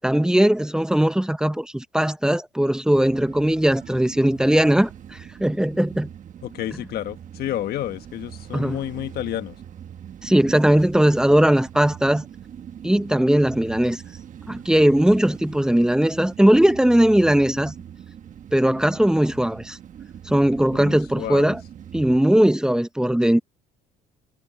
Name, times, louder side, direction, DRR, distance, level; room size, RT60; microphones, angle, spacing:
voice 1, 0.0-6.1 8.5-8.8 10.2-12.2 12.8-14.0 14.5-17.7 18.5-19.8 20.3-21.6 21.9-23.4, right 1 dB, 5° right, 0.8 m, -19 dB
sound 1, 2.9-22.2, right 9 dB, 50° right, 1.3 m, -42 dB
voice 2, 6.4-9.6 20.7-21.5, left 12 dB, 65° left, 1.6 m, -30 dB
cardioid pair, 110°, 17 cm